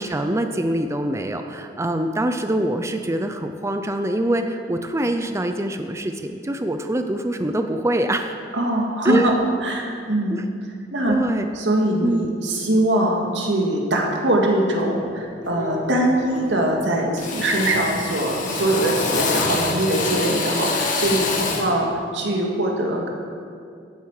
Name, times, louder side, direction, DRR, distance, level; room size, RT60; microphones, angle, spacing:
voice 1, 0.0-8.4 9.0-9.3 10.3-10.5 11.1-11.5 12.0-12.3 21.1-21.6, right 1 dB, 15° right, 6 dB, 0.5 m, -24 dB
voice 2, 8.5-10.5 10.9-11.2 11.6-21.3 21.6-23.1, right 1 dB, 90° right, 0 dB, 2.0 m, -22 dB
Drill, 14.9-15.1 15.5-16.0 16.3-16.8 17.2-21.8, left 3 dB, 45° left, 1.7 m, -26 dB
15.0 x 9.3 x 4.8 m, 2.3 s
head